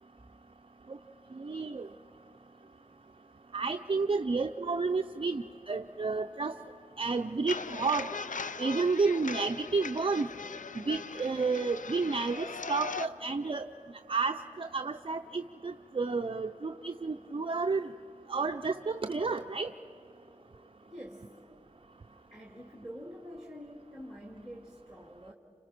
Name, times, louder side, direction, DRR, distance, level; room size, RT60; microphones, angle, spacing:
voice 1, 1.4-1.9 3.5-6.6 7.0-8.1 8.6-10.3 10.9-13.7 14.1-17.9 18.3-19.7, right 4 dB, 45° right, 6 dB, 0.5 m, -31 dB
sound 1, 7.5-13.1, left 5 dB, 85° left, 0.5 m, -40 dB
voice 2, 20.8-21.3 22.3-25.3, equal, 5° right, 0 dB, 2.0 m, -46 dB
30.0 x 27.0 x 6.0 m, 3.0 s
wide cardioid pair, 75°, 13 cm